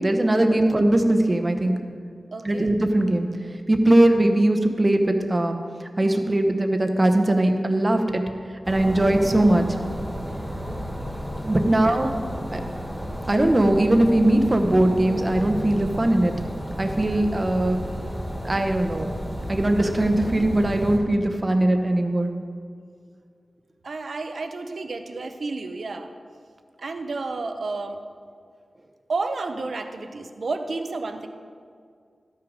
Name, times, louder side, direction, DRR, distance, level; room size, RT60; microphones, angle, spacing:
voice 1, 0.0-1.7 2.4-3.3 3.7-5.6 6.0-8.2 8.7-9.8 11.4-12.1 12.5-12.6 13.3-16.3 16.8-17.8 18.4-19.1 19.5-22.3, right 1 dB, 25° right, 5 dB, 0.8 m, -20 dB
voice 2, 2.3-2.7 11.7-12.1 23.8-26.1 26.8-28.0 29.1-31.3, right 3 dB, 65° right, 7 dB, 0.7 m, -31 dB
sound 1, 8.6-21.0, equal, ahead, 1.7 m, -32 dB
13.0 x 6.1 x 5.0 m, 2.2 s
wide cardioid pair, 115°, 0 cm